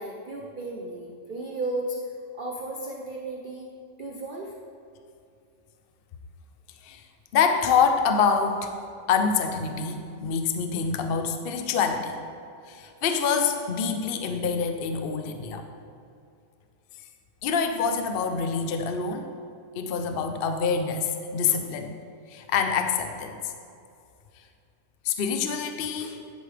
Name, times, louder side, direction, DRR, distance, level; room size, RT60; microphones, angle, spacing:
voice 1, 0.0-3.7 4.0-4.5, right 2 dB, 60° right, -1 dB, 0.5 m, -34 dB
voice 2, 7.3-8.7 9.1-12.1 12.7-15.6 17.4-19.3 19.8-22.0 22.3-23.5 25.0-26.2, left 6 dB, 75° left, 6 dB, 0.5 m, -26 dB
10.5 x 8.4 x 3.4 m, 2.5 s
omnidirectional pair, 2.0 m